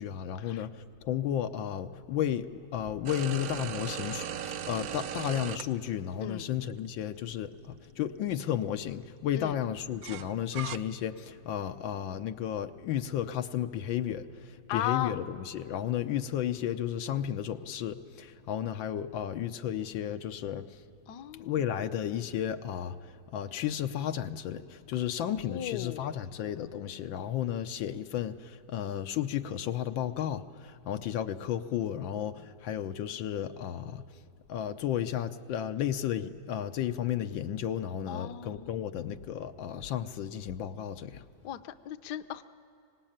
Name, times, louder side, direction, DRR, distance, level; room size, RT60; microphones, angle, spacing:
voice 1, 0.0-20.8 21.4-34.0 34.5-41.2, left 10 dB, 90° left, 8 dB, 1.6 m, -33 dB
sound 1, 3.1-5.6 6.7-6.8 10.0-10.8, right 9 dB, 60° right, 1.0 m, -37 dB
voice 2, 6.2-6.5 9.3-9.6 14.7-15.2 21.1-21.6 25.4-26.1 38.1-39.0 41.4-42.4, left 11 dB, 70° left, 11 dB, 1.2 m, -37 dB
25.0 x 19.0 x 8.8 m, 2.8 s
omnidirectional pair, 2.1 m